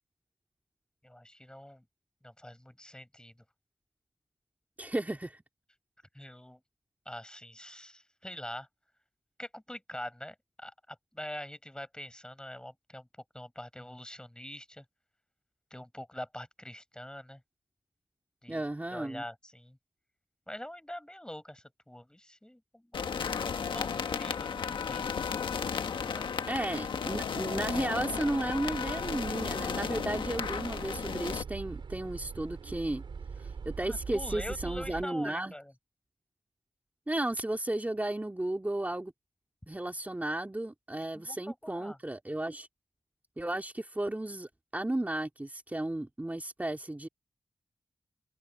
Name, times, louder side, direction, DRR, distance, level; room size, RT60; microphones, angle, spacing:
voice 1, 1.0-1.8 2.2-3.3 6.1-6.6 7.1-8.7 9.4-13.1 13.3-14.8 15.7-17.4 18.4-18.6 18.9-19.8 20.5-23.2 23.6-26.5 33.8-35.7 41.1-42.0, left 1 dB, 10° left, 7.6 m, -45 dB
voice 2, 4.8-5.4 18.5-19.2 26.5-33.0 33.4-35.5 37.1-39.1 39.7-42.7 43.4-47.1, right 1 dB, 20° right, 3.0 m, -34 dB
sound 1, 22.9-31.4, left 6 dB, 85° left, 1.5 m, -34 dB
sound 2, 27.7-35.1, right 5 dB, 80° right, 5.1 m, -42 dB
cardioid pair, 50°, 8 cm